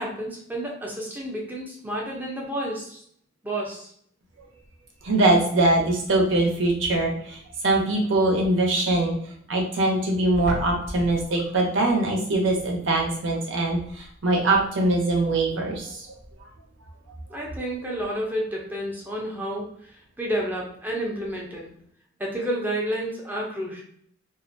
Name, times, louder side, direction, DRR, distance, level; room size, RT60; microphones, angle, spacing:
voice 1, 0.0-3.0 3.4-3.9 17.3-19.7 20.2-21.7 22.2-23.8, right 1 dB, 10° right, -2 dB, 0.5 m, -30 dB
voice 2, 5.0-7.4 7.6-9.2 9.5-16.1, right 2 dB, 80° right, 0 dB, 0.6 m, -22 dB
2.4 x 2.1 x 2.5 m, 0.63 s
head